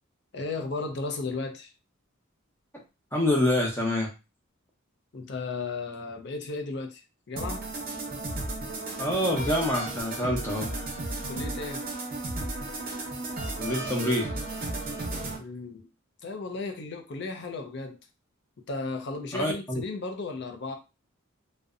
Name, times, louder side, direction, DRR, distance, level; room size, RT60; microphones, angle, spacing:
voice 1, 0.3-1.7 5.1-7.6 11.2-11.8 15.4-15.9 16.2-18.0 18.7-20.8, left 3 dB, 55° left, 0.5 m, -35 dB
voice 2, 3.1-4.1 9.0-10.7 13.6-14.3 19.3-19.8, left 1 dB, 10° left, 0.6 m, -26 dB
sound 1, 7.4-15.4, right 2 dB, 40° right, 0.6 m, -34 dB
2.6 x 2.1 x 2.4 m
head